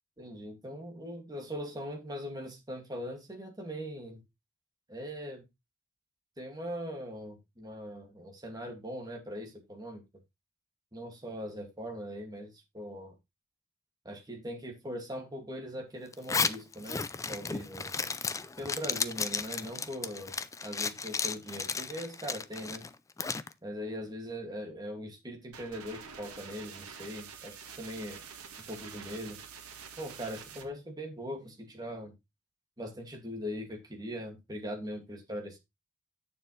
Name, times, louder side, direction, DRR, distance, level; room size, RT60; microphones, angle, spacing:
voice 1, 0.2-4.2 4.9-5.4 6.4-10.0 10.9-13.1 14.0-17.0 17.3-17.9 18.6-20.3 20.6-22.9 23.6-28.2 28.7-29.4 30.0-32.1 32.8-35.6, equal, 20° right, 2 dB, 2.2 m, -40 dB
Zipper (clothing), 16.1-23.5, left 5 dB, 15° left, 0.4 m, -34 dB
sound 1, 25.5-30.7, right 6 dB, 80° right, 1.6 m, -47 dB
9.2 x 6.9 x 3.2 m, 0.22 s
head